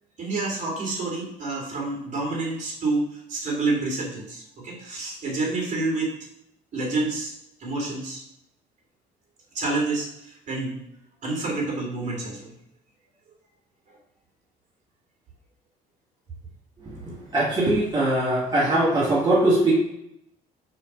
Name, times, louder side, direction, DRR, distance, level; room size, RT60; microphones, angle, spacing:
voice 1, 0.2-6.1 6.7-7.3 7.6-8.2 9.5-10.7 11.2-12.5, right 3 dB, 45° right, -1 dB, 2.9 m, -28 dB
voice 2, 17.3-19.7, right 1 dB, 25° right, -7 dB, 2.1 m, -21 dB
4.9 x 4.6 x 6.1 m, 0.79 s
cardioid pair, 110°, 17 cm